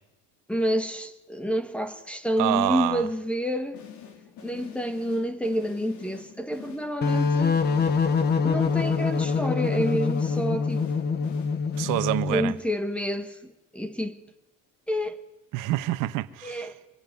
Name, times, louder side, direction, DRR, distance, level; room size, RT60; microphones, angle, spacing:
voice 1, 0.5-3.8 4.4-7.6 8.4-10.9 12.3-13.4 13.7-14.2 14.9-15.2 16.4-16.8, equal, 5° left, 1.3 m, -28 dB
voice 2, 2.4-3.1 11.8-12.5 15.5-16.7, right 17 dB, 60° right, 1.4 m, -27 dB
sound 1, 3.7-12.5, left 8 dB, 55° left, 3.5 m, -46 dB
sound 2, 7.0-12.5, left 5 dB, 30° left, 1.3 m, -25 dB
25.0 x 23.0 x 9.5 m
cardioid pair, 155°, 35 cm